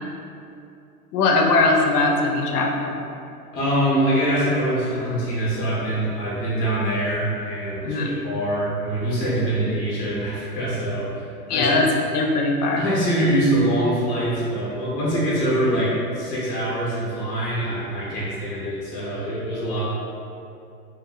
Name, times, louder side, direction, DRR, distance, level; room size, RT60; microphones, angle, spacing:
voice 1, 1.1-3.0 7.8-8.1 11.5-12.8, left 3 dB, 75° left, 1 dB, 0.5 m, -20 dB
voice 2, 3.5-11.8 12.7-19.9, right 1 dB, 20° left, -8 dB, 0.6 m, -24 dB
2.4 x 2.0 x 3.6 m, 2.6 s
hypercardioid pair, 155°, 47 cm